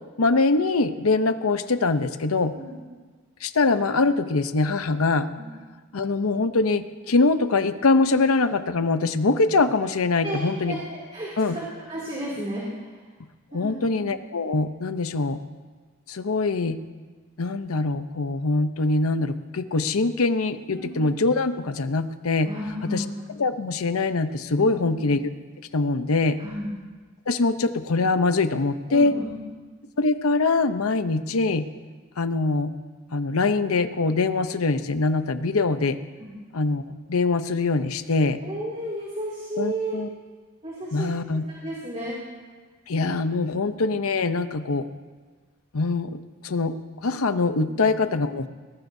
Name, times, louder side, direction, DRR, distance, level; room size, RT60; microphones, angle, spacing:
voice 1, 0.2-2.5 3.4-5.3 5.9-10.8 11.4-11.6 13.5-15.4 16.1-16.8 17.4-22.5 22.8-23.0 23.4-25.3 25.7-26.4 27.3-29.2 30.0-31.7 32.2-32.7 33.1-36.0 36.5-36.8 37.1-38.4 39.6-40.1 40.9-41.4 42.9-44.9 45.7-46.7 47.0-48.5, left 3 dB, 85° left, 10 dB, 0.8 m, -23 dB
voice 2, 10.2-13.1 13.5-14.0 20.7-21.1 22.4-23.2 24.6-25.1 26.4-26.8 28.9-29.4 36.2-36.4 38.4-40.0 40.6-42.2 47.7-47.8, right 1 dB, 30° right, -6 dB, 2.7 m, -33 dB
21.0 x 18.5 x 2.7 m, 1.4 s
head